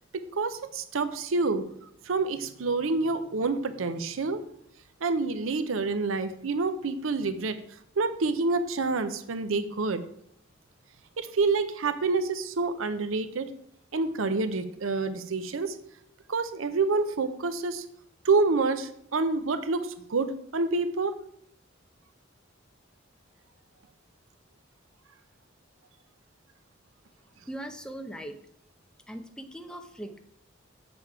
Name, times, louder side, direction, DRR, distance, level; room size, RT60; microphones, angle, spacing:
voice 1, 0.1-1.6 2.0-4.4 5.0-7.6 8.0-10.0 11.2-13.5 13.9-15.8 16.3-17.8 18.2-21.1, right 3 dB, 90° right, 11 dB, 0.7 m, -27 dB
voice 2, 27.5-28.4 29.1-30.2, right 1 dB, 5° left, 5 dB, 0.7 m, -40 dB
7.2 x 6.9 x 4.7 m, 0.70 s
head